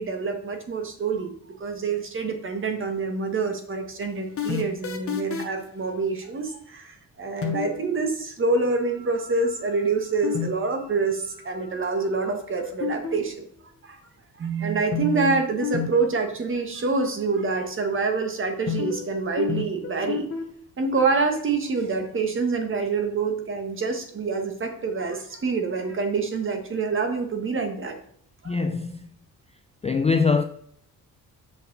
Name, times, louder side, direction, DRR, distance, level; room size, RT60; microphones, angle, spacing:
voice 1, 0.0-1.3 1.6-13.5 13.8-14.0 14.4-20.3 20.8-28.0 28.4-28.6, right 4 dB, 35° right, 1.4 m, -26 dB
sound 1, 4.0-5.7 7.4-7.8 10.2-10.5 10.7-10.8 12.6-13.4 14.9-15.3 15.6-15.9 16.1-16.2 18.7-19.1 19.4-20.4, left 8 dB, 40° left, 1.3 m, -28 dB
Wind instrument woodwind instrument, 8.6-12.6, right 3 dB, 15° right, 2.2 m, -51 dB
voice 2, 28.4-29.1 29.8-30.4, left 4 dB, 20° left, 0.3 m, -22 dB
8.2 x 5.9 x 4.1 m
cardioid pair, 155°, 35 cm